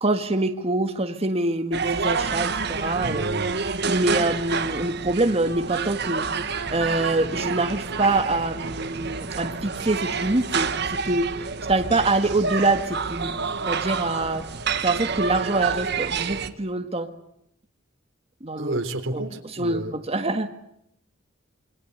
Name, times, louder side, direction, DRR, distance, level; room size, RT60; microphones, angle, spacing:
voice 1, 0.0-3.3 3.9-6.3 6.7-11.3 11.7-13.3 13.7-14.5 14.8-17.1 18.4-18.8 19.6-19.8 20.1-20.5, right 2 dB, 30° right, 6 dB, 1.7 m, -25 dB
sound 1, 1.7-16.5, right 5 dB, 60° right, 1.6 m, -28 dB
voice 2, 3.0-3.6 18.6-20.0, right 1 dB, 90° right, 6 dB, 3.7 m, -30 dB
27.5 x 24.5 x 8.1 m, 0.74 s
head